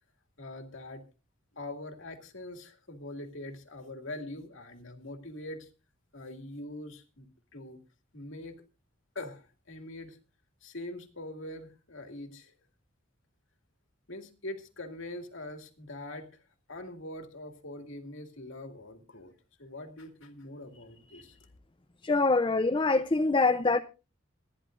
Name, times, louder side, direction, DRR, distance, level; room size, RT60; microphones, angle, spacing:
voice 1, 0.4-1.0 1.5-5.7 6.1-7.8 8.1-8.5 9.1-10.2 10.6-12.5 14.1-16.3 16.7-19.3 19.6-21.4, left 1 dB, 70° left, 2.3 m, -43 dB
voice 2, 22.0-23.8, left 3 dB, 25° left, 0.6 m, -24 dB
27.0 x 10.5 x 2.5 m
head